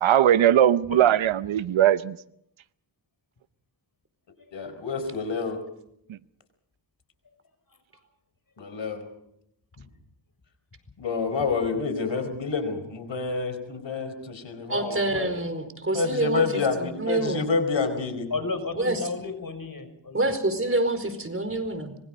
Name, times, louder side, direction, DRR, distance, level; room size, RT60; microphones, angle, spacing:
voice 1, 0.0-2.2, right 11 dB, 85° right, 0.8 m, -19 dB
voice 2, 4.5-5.6 8.6-9.1 11.0-15.3 15.9-18.3, left 4 dB, 70° left, 4.8 m, -28 dB
voice 3, 14.7-16.5 16.8-17.5 18.8-19.0 20.1-22.0, right 2 dB, 30° right, 4.7 m, -27 dB
voice 4, 18.3-20.3, left 3 dB, 45° left, 6.2 m, -33 dB
26.0 x 22.5 x 5.3 m
cardioid pair, 65°, 46 cm